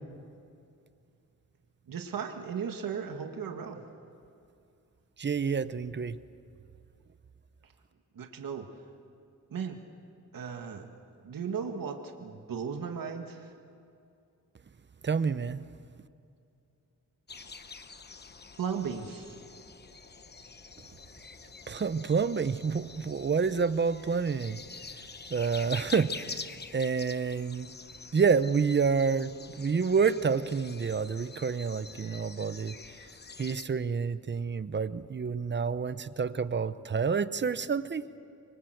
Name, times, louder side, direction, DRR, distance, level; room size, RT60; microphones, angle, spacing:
voice 1, 1.9-3.8 8.2-8.7 9.5-9.8 10.3-10.9 11.2-13.5 18.6-19.4, right 6 dB, 75° right, 4 dB, 1.8 m, -36 dB
voice 2, 5.2-6.2 15.0-15.6 21.7-24.6 24.9-26.4 26.7-27.7 28.1-33.0 33.4-38.1, right 5 dB, 35° right, 14 dB, 0.8 m, -28 dB
sound 1, 17.3-33.6, left 4 dB, 30° left, 1.0 m, -46 dB
26.0 x 24.0 x 7.9 m, 2.5 s
wide cardioid pair, 130°, 34 cm